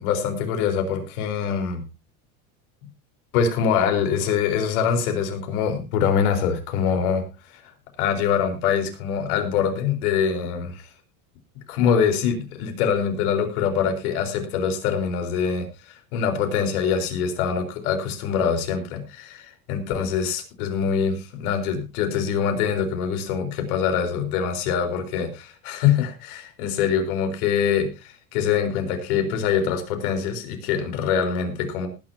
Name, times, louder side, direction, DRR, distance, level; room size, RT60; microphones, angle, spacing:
voice 1, 0.0-1.8 3.3-7.2 8.0-10.7 11.7-15.7 16.1-31.9, left 7 dB, 75° left, 5 dB, 4.4 m, -24 dB
19.5 x 10.5 x 2.8 m, 0.28 s
supercardioid pair, 110°, 44 cm